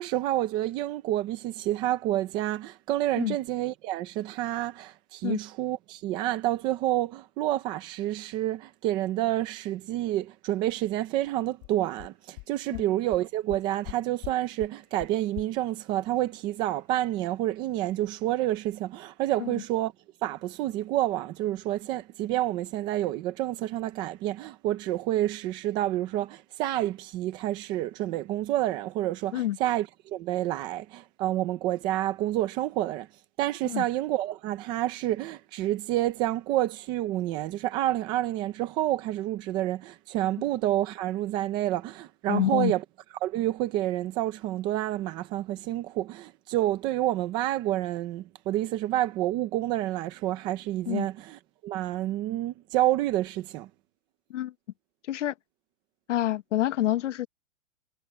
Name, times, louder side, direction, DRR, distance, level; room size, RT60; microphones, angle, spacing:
voice 1, 0.0-19.9 20.2-33.1 33.4-42.8 43.2-53.7, right 14 dB, 15° right, 0.5 m, -29 dB
sound 1, 11.3-11.4 11.6-11.7 12.0-12.1 12.4-12.5 12.7-12.8 13.1-13.2 13.5-13.9 14.2-14.3 14.6-14.7 15.0-15.1 15.4-15.5, left 19 dB, 25° left, 1.0 m, -39 dB
voice 2, 42.3-42.7 50.9-51.1 54.3-54.5 55.1-55.3 56.1-57.3, left 13 dB, 80° left, 1.2 m, -27 dB
supercardioid pair, 170°, 36 cm